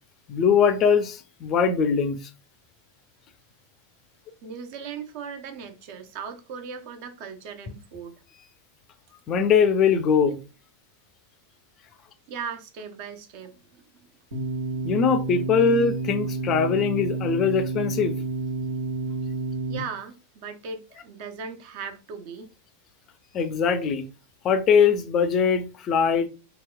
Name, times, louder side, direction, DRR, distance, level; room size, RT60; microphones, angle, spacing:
voice 1, 0.3-2.2 9.3-10.4 14.8-18.2 23.3-24.0 24.4-26.3, left 6 dB, 30° left, 0.4 m, -21 dB
voice 2, 4.4-8.2 12.3-13.8 19.7-22.5, right 6 dB, 45° right, 0.6 m, -38 dB
sound 1, 14.3-19.8, right 2 dB, 60° right, 1.0 m, -30 dB
2.9 x 2.9 x 2.2 m
figure-of-eight pair, 90°, 0 cm